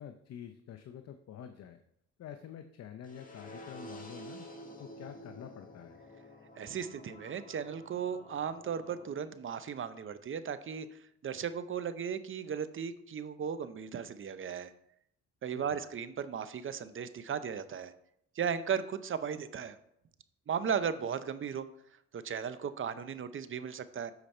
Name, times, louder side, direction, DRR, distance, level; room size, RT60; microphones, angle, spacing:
voice 1, 0.0-1.8 2.2-4.5 4.8-6.0 15.5-15.8, left 9 dB, 55° left, 8 dB, 0.7 m, -47 dB
sound 1, 3.0-9.0, equal, 25° left, 1.6 m, -50 dB
voice 2, 6.6-10.9 11.2-14.7 15.4-17.9 18.4-19.8 20.5-21.7 22.1-24.1, right 7 dB, 45° right, 12 dB, 0.7 m, -36 dB
8.1 x 5.1 x 4.4 m, 0.74 s
cardioid pair, 90°, 30 cm